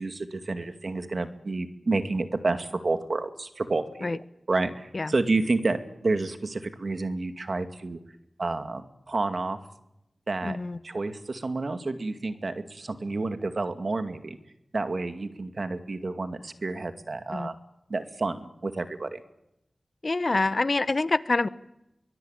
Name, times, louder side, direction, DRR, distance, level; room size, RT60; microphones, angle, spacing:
voice 1, 0.0-8.0 8.4-9.6 10.3-10.6 10.8-14.4 14.7-17.5 17.9-19.2, right 3 dB, 65° right, 8 dB, 2.3 m, -30 dB
voice 2, 10.4-10.8 17.3-17.5 20.0-21.5, left 3 dB, 55° left, 15 dB, 1.1 m, -26 dB
23.5 x 21.0 x 9.1 m, 0.85 s
cardioid pair, 45°, 0 cm